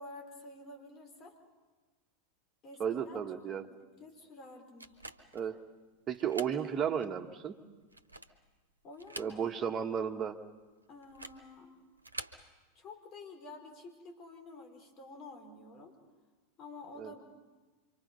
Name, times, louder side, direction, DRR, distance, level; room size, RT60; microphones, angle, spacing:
voice 1, 0.0-1.4 2.6-3.5 4.0-5.0 8.8-9.4 10.9-11.7 12.7-15.9 16.6-17.2, left 2 dB, 35° left, 4 dB, 4.9 m, -50 dB
voice 2, 2.8-3.6 5.3-5.6 6.1-7.5 9.2-10.4 17.0-17.1, right 8 dB, 30° right, 5 dB, 1.6 m, -34 dB
sound 1, 4.8-5.5 6.1-6.6 7.0-7.1 7.8-8.5 8.9-9.7 10.0-10.1 11.0-11.5 12.0-12.4, right 2 dB, 85° right, 1.1 m, -46 dB
26.5 x 24.5 x 5.5 m, 1.3 s
figure-of-eight pair, 85°, 0 cm